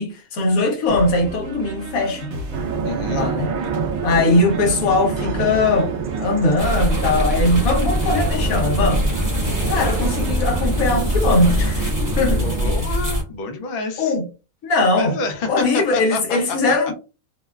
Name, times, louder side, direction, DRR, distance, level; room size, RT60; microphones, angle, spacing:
voice 1, 0.0-2.3 3.1-3.5 4.0-5.9 6.2-9.1 9.7-12.4 14.0-14.2 14.6-15.1 15.5-16.9, left 2 dB, 80° left, 1.2 m, -20 dB
sound 1, 0.9-12.3, right 2 dB, 55° right, 1.1 m, -33 dB
sound 2, 2.5-12.7, right 5 dB, 80° right, 0.4 m, -28 dB
voice 2, 2.8-3.4 12.4-14.1 15.0-16.7, left 2 dB, 55° left, 0.7 m, -28 dB
sound 3, 6.6-13.2, left 1 dB, 15° right, 0.7 m, -22 dB
2.9 x 2.2 x 2.2 m
omnidirectional pair, 1.4 m